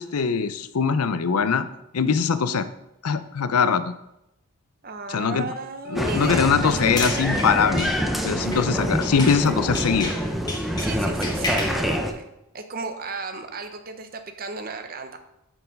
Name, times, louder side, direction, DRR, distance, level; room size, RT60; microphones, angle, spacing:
voice 1, 0.0-1.7 1.9-2.7 3.0-3.9 5.1-5.5 5.9-7.9 8.2-10.1, left 6 dB, 90° left, 12 dB, 0.6 m, -22 dB
voice 2, 4.8-6.9 10.8-12.2 12.5-15.2, right 3 dB, 40° right, 7 dB, 0.8 m, -34 dB
Applause, 5.9-12.1, equal, ahead, 0.6 m, -26 dB
sound 1, 6.7-9.5 9.7-11.8, left 2 dB, 20° left, 1.3 m, -32 dB
6.8 x 5.9 x 5.3 m, 0.85 s
head